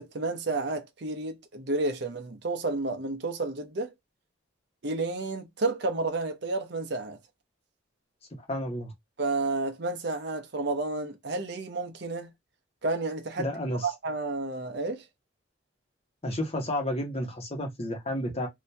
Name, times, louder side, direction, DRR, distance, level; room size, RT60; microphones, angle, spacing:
voice 1, 0.0-3.9 4.8-7.2 9.2-12.3 12.8-13.6 13.8-15.0, right 3 dB, 60° right, 0.6 m, -31 dB
voice 2, 8.5-8.9 13.4-13.9 16.2-18.5, left 1 dB, 30° left, 1.1 m, -31 dB
2.8 x 2.7 x 3.3 m
head